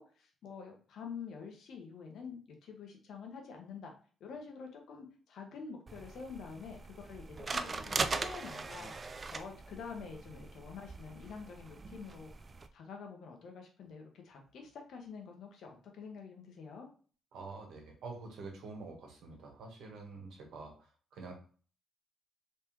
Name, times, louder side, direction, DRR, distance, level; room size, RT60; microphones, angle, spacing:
voice 1, 0.0-3.9 4.2-8.9 9.3-12.3 12.7-16.9, left 5 dB, 70° left, 2 dB, 1.0 m, -47 dB
sound 1, 5.9-12.7, right 4 dB, 35° right, 0.3 m, -40 dB
voice 2, 17.3-21.3, right 3 dB, 75° right, 1 dB, 1.2 m, -47 dB
3.5 x 3.2 x 3.0 m, 0.41 s
cardioid pair, 90°, 0 cm